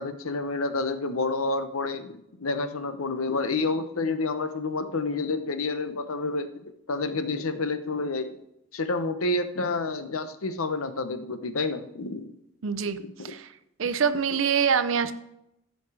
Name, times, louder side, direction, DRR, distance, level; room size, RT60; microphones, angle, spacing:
voice 1, 0.0-6.5 6.9-8.4 8.7-12.3 13.0-13.3, left 3 dB, 80° left, 10 dB, 0.9 m, -29 dB
voice 2, 12.6-13.5 13.8-15.1, right 6 dB, 65° right, 10 dB, 0.5 m, -25 dB
15.0 x 5.2 x 4.9 m, 0.83 s
head